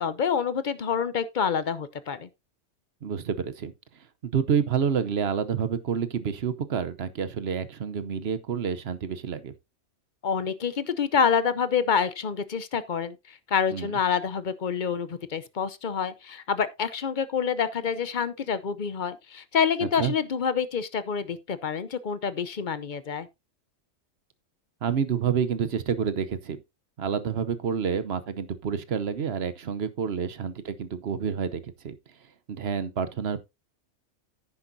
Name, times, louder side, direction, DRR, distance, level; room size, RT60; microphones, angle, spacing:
voice 1, 0.0-2.3 10.2-23.3, left 6 dB, 45° left, 0.7 m, -27 dB
voice 2, 3.0-3.7 4.2-9.5 13.7-14.0 19.8-20.1 24.8-26.6 27.0-32.0 32.5-33.4, right 7 dB, 55° right, 1.0 m, -28 dB
10.0 x 9.9 x 2.7 m
omnidirectional pair, 1.4 m